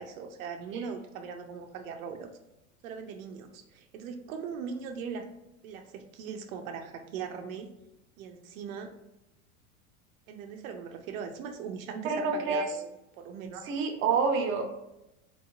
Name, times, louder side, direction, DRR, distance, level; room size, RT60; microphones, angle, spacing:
voice 1, 0.0-2.3 2.8-5.3 5.6-7.7 8.2-8.9 10.3-12.9 13.2-13.7, right 6 dB, 80° right, 5 dB, 0.5 m, -39 dB
voice 2, 12.0-12.7 13.7-14.6, right 5 dB, 30° right, 3 dB, 0.5 m, -27 dB
3.0 x 2.1 x 2.4 m, 0.91 s
hypercardioid pair, 95°, 41 cm